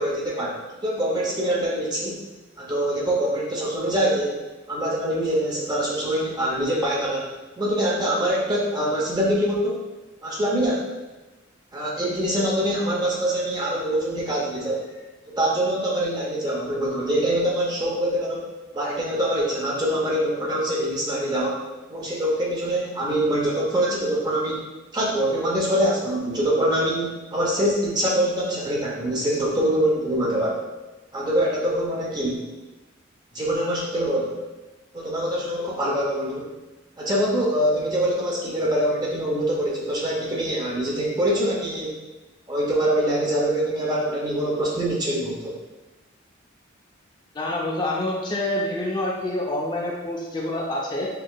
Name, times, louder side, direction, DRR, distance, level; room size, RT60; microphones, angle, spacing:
voice 1, 0.0-2.2 2.6-9.8 10.2-10.9 11.7-14.8 15.3-18.5 18.7-21.6 21.9-24.6 24.9-30.6 31.1-32.4 33.3-34.4 34.9-36.5 37.0-42.0 42.5-45.6, right 1 dB, 20° right, -4 dB, 0.6 m, -24 dB
voice 2, 47.3-51.1, left 1 dB, 25° left, -3 dB, 0.5 m, -27 dB
4.5 x 2.9 x 2.2 m, 1.1 s
head